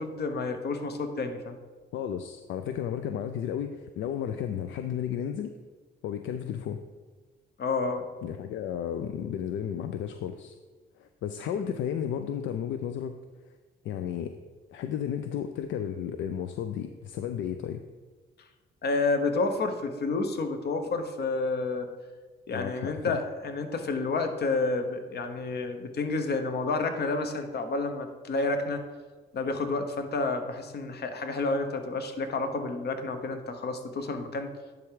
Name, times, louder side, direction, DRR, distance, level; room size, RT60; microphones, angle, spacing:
voice 1, 0.0-1.6 7.6-8.0 18.8-21.9 22.5-28.9 29.3-34.5, left 3 dB, 55° left, 7 dB, 1.0 m, -30 dB
voice 2, 1.9-5.5 6.0-6.8 8.2-10.5 11.0-13.6 13.8-14.4 14.7-17.8 22.5-23.2, left 9 dB, 75° left, 8 dB, 0.4 m, -33 dB
10.5 x 3.5 x 4.8 m, 1.4 s
cardioid pair, 90°, 20 cm